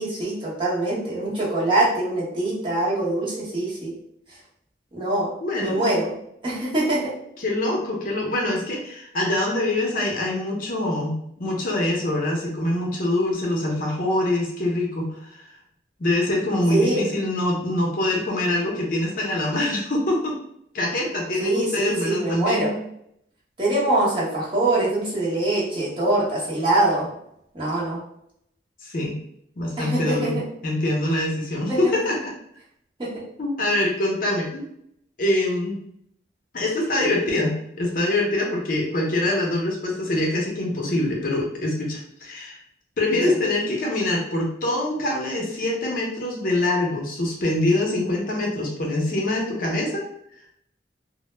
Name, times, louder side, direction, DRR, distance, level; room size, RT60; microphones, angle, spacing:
voice 1, 0.0-3.9 4.9-5.3 5.6-6.2 6.4-7.1 16.7-17.0 21.4-22.7 23.6-27.1 27.5-28.0 29.8-30.4 31.7-31.8 33.0-33.2 43.2-43.3, right 2 dB, 30° right, -7 dB, 0.8 m, -23 dB
voice 2, 5.4-5.9 7.4-15.4 16.0-20.3 20.7-22.7 28.8-29.2 29.6-30.4 30.6-32.3 33.4-34.6 35.2-35.8 36.5-42.6 43.0-50.0, left 1 dB, 50° left, -1 dB, 0.6 m, -24 dB
2.0 x 2.0 x 3.1 m, 0.72 s
head